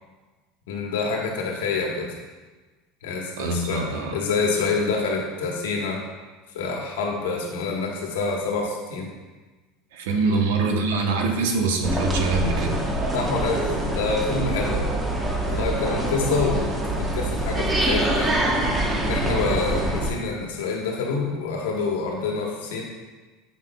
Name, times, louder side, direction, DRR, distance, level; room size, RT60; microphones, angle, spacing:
voice 1, 0.7-2.1 3.0-6.0 6.5-9.1 10.3-10.4 13.1-13.6 13.9-14.9 15.5-18.3 19.0-22.8, left 4 dB, 85° left, 0 dB, 1.2 m, -27 dB
voice 2, 3.4-4.2 9.9-12.8, right 3 dB, 80° right, 3 dB, 0.8 m, -24 dB
sound 1, 11.8-20.1, right 1 dB, 20° right, 0.9 m, -25 dB
8.0 x 5.7 x 2.2 m, 1.3 s
supercardioid pair, 100°, 0 cm